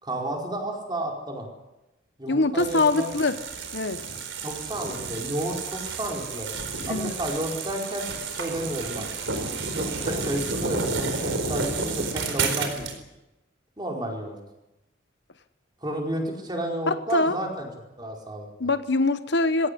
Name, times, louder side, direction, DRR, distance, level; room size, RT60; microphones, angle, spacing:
voice 1, 0.0-1.5 2.2-3.1 4.4-6.5 6.9-8.1 8.3-9.1 9.7-12.9 13.8-14.4 15.8-17.7 18.0-18.5, right 1 dB, 20° right, 0 dB, 4.7 m, -31 dB
voice 2, 2.3-3.4 3.7-4.0 6.9-7.1 16.9-17.4 18.6-19.7, left 3 dB, 60° left, 11 dB, 1.0 m, -23 dB
sound 1, 2.6-13.0, right 4 dB, 80° right, 4.4 m, -31 dB
20.5 x 17.5 x 9.8 m, 0.96 s
head